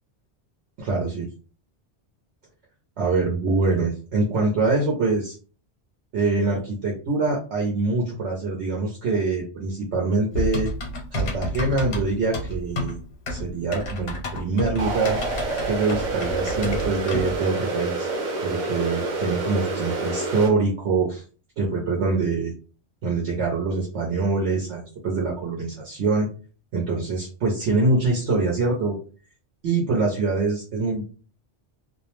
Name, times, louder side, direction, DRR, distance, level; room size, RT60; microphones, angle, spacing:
voice 1, 0.8-1.3 3.0-5.4 6.1-10.7 11.1-13.0 13.3-15.2 15.6-18.1 18.4-21.2 21.6-22.5 23.0-26.3 26.7-29.0 29.6-31.0, right 3 dB, 80° right, -2 dB, 1.0 m, -24 dB
Typing, 10.3-17.4, left 1 dB, 70° left, 0.9 m, -30 dB
sound 1, 14.8-20.5, right 3 dB, 55° right, 0.6 m, -28 dB
2.4 x 2.0 x 2.9 m, 0.38 s
omnidirectional pair, 1.2 m